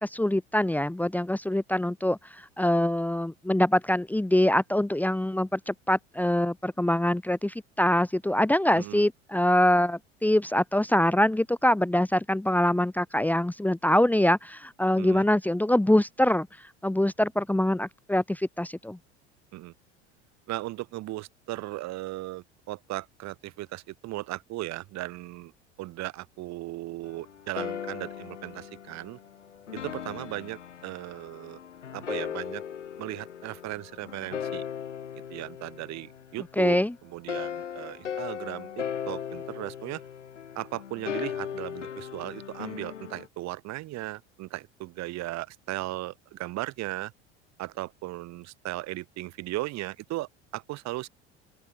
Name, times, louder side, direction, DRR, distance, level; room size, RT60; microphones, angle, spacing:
voice 1, 0.0-16.5 16.8-19.0 36.6-36.9, left 1 dB, 5° left, 1.5 m, -24 dB
voice 2, 20.5-25.5 25.8-29.2 29.7-31.6 31.9-32.6 33.0-34.6 35.3-40.0 40.5-47.1 47.6-51.1, right 18 dB, 50° right, 2.6 m, -37 dB
sound 1, 27.0-36.7 37.3-43.3, left 8 dB, 85° left, 1.3 m, -38 dB
open air
figure-of-eight pair, 70°, 35 cm